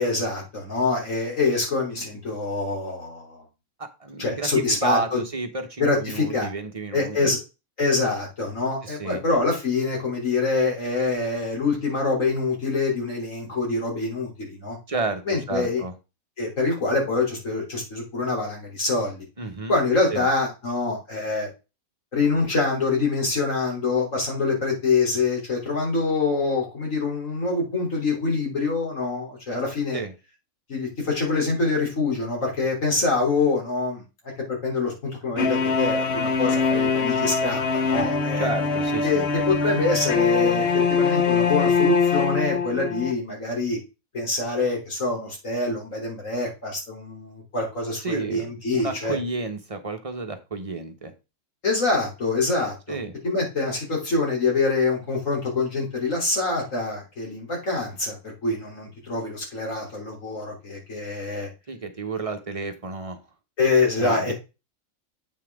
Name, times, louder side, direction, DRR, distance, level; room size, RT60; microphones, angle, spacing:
voice 1, 0.0-3.4 4.2-5.2 5.8-6.5 6.9-7.4 7.8-14.8 15.3-15.8 16.4-19.2 19.7-21.5 22.1-30.0 30.7-34.0 34.5-38.5 39.0-43.8 44.1-49.2 51.6-53.0 53.2-61.5 63.6-64.3, left 3 dB, 65° left, -1 dB, 3.6 m, -25 dB
voice 2, 3.8-7.3 8.8-9.2 14.9-15.9 19.4-19.8 20.1-20.3 29.9-30.1 38.4-39.3 48.0-51.1 52.9-53.1 61.7-63.2 64.0-64.3, right 3 dB, 30° right, 6 dB, 0.9 m, -31 dB
sound 1, 35.4-43.1, left 5 dB, 50° left, 1.2 m, -23 dB
8.3 x 5.7 x 3.5 m, 0.28 s
omnidirectional pair, 1.5 m